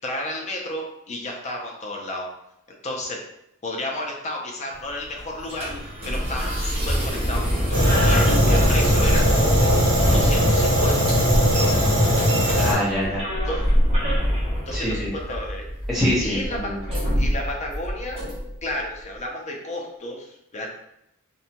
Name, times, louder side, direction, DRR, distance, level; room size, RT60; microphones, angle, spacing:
voice 1, 0.0-2.3 2.8-3.2 3.6-9.6 10.1-11.1 13.5-13.6 14.7-15.6 16.2-16.7 17.2-18.2 18.6-20.7, left 1 dB, 30° left, 0 dB, 0.4 m, -32 dB
sound 1, 4.7-18.7, equal, 25° right, 0.6 m, -25 dB
Fire, 7.7-12.7, equal, 55° right, 0.9 m, -19 dB
voice 2, 12.4-13.2 14.7-15.1 15.9-16.8, left 1 dB, ahead, -9 dB, 0.9 m, -25 dB
2.6 x 2.2 x 2.8 m, 0.82 s
head